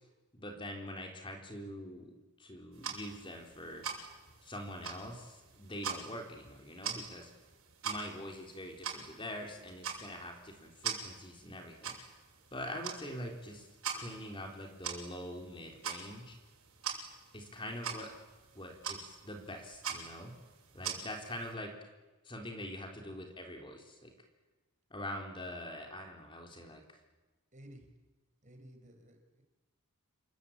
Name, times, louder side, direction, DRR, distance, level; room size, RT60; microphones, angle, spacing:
voice 1, 0.3-3.9 4.4-7.3 7.8-12.0 12.5-16.4 17.3-18.1 18.5-20.3 20.7-21.7 22.2-24.1 24.9-27.0, left 1 dB, 25° left, 2 dB, 3.7 m, -44 dB
sound 1, 2.7-21.5, right 7 dB, 70° right, 6.7 m, -44 dB
voice 2, 27.5-27.9 28.4-29.4, right 1 dB, 35° right, 4 dB, 5.0 m, -54 dB
29.0 x 23.5 x 8.7 m, 1.2 s
head